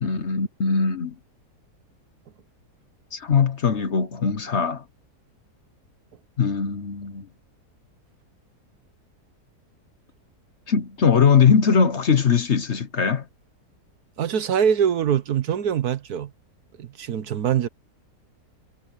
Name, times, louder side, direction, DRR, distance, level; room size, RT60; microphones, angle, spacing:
voice 1, 0.0-1.1 3.1-4.8 6.4-7.3 10.7-13.2, left 6 dB, 50° left, 1.2 m, -20 dB
voice 2, 14.2-16.3 16.8-17.7, right 8 dB, 70° right, 1.4 m, -23 dB
omnidirectional pair, 1.7 m